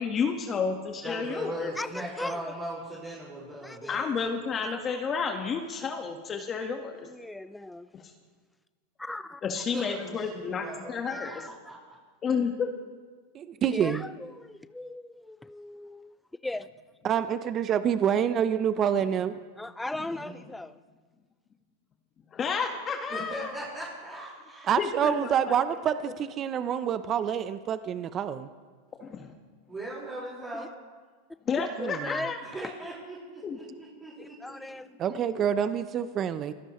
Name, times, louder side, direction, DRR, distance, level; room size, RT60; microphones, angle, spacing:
voice 1, 0.0-1.7 3.9-7.1 7.9-8.1 9.4-11.4 12.2-12.7 22.3-23.5 24.8-25.4 29.0-29.3 31.5-32.4 33.4-33.6, left 5 dB, 30° left, 3 dB, 1.6 m, -31 dB
voice 2, 1.0-4.1 9.7-12.0 20.1-20.3 23.1-24.8 29.7-30.7 32.4-34.8, right 1 dB, 20° right, -7 dB, 5.1 m, -39 dB
voice 3, 1.8-2.5 3.6-4.0 4.6-4.7 7.0-7.9 9.0-9.4 11.1-11.5 13.6-16.2 16.4-16.7 19.6-20.7 30.5-30.7 31.6-32.3 32.6-32.7 34.2-35.4, left 2 dB, 5° left, 13 dB, 0.4 m, -38 dB
voice 4, 13.3-14.0 17.0-19.3 24.7-28.5 31.8-32.1 35.0-36.5, right 8 dB, 35° right, 12 dB, 0.8 m, -27 dB
24.5 x 16.5 x 3.2 m, 1.4 s
hypercardioid pair, 110°, 0 cm